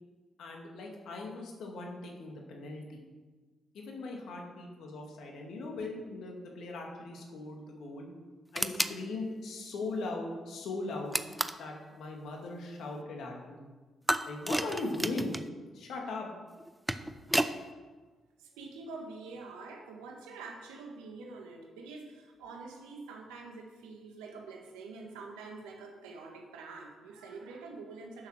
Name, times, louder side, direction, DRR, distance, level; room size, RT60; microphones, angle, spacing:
voice 1, 0.4-3.0 3.7-8.1 8.5-11.2 11.6-13.7 14.2-15.4 15.7-16.3, left 2 dB, 70° left, 0 dB, 2.3 m, -39 dB
sound 1, 8.5-9.0 11.1-11.7 14.1-15.5 16.6-17.6, right 1 dB, 10° right, 0.7 m, -31 dB
voice 2, 18.6-28.3, right 3 dB, 85° right, 2 dB, 1.7 m, -46 dB
10.0 x 7.0 x 6.6 m, 1.4 s
hypercardioid pair, 45°, 0 cm